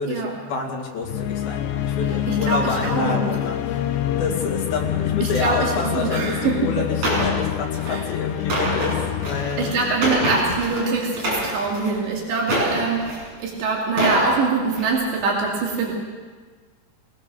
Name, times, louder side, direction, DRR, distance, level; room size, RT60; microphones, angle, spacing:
voice 1, 0.0-3.9 4.2-6.4 6.6-9.8, left 4 dB, 60° left, 0 dB, 4.2 m, -28 dB
sound 1, 1.0-11.1, left 11 dB, 80° left, 3.0 m, -27 dB
voice 2, 2.3-3.3 5.2-6.9 7.9-8.0 9.6-15.9, right 4 dB, 80° right, -2 dB, 4.8 m, -24 dB
sound 2, 7.0-7.3 7.7-8.0 8.3-10.8 11.1-11.9 12.4-13.3 13.8-14.3 14.7-14.9, right 1 dB, 40° right, 7.9 m, -25 dB
24.5 x 18.0 x 6.7 m, 1.5 s
omnidirectional pair, 5.0 m